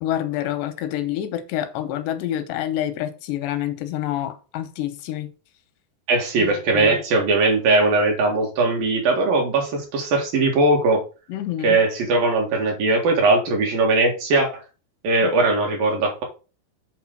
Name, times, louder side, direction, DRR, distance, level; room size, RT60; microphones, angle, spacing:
voice 1, 0.0-5.3 6.4-7.0 11.3-11.8 15.2-15.3, left 12 dB, 90° left, 10 dB, 3.1 m, -27 dB
voice 2, 6.1-11.0 11.6-14.6 15.0-16.2, right 2 dB, 60° right, 1 dB, 3.3 m, -20 dB
8.3 x 3.9 x 6.1 m, 0.33 s
omnidirectional pair, 4.8 m